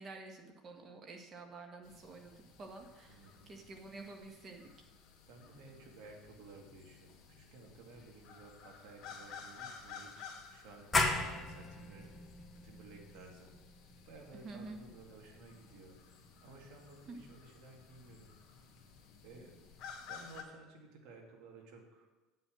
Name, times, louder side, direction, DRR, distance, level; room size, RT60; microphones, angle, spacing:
voice 1, 0.0-4.7 14.3-14.8 17.1-17.2, right 3 dB, 35° right, 3 dB, 1.7 m, -49 dB
sound 1, 1.8-20.4, left 6 dB, 50° left, 1.9 m, -54 dB
voice 2, 3.1-3.6 5.3-10.3 10.5-12.2 12.6-13.5 14.1-16.0 16.4-18.3 19.2-19.6 20.0-22.1, right 3 dB, 70° right, 1 dB, 2.4 m, -55 dB
sound 2, 10.9-16.3, left 3 dB, 15° left, 1.2 m, -37 dB
9.1 x 5.7 x 7.6 m, 1.2 s
supercardioid pair, 125°, 0 cm